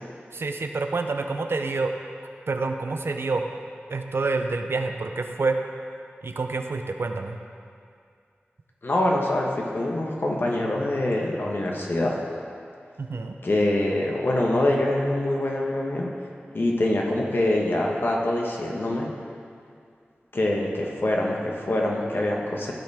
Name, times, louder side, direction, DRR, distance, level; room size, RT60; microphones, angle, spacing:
voice 1, 0.3-1.9 2.5-3.4 3.9-5.6 6.2-7.4 13.0-13.4, right 3 dB, 70° right, 5 dB, 0.6 m, -27 dB
voice 2, 8.8-12.2 13.4-16.1 16.5-19.1 20.3-22.7, left 1 dB, 60° left, -1 dB, 1.4 m, -24 dB
15.0 x 5.5 x 3.6 m, 2.3 s
wide cardioid pair, 80°, 4 cm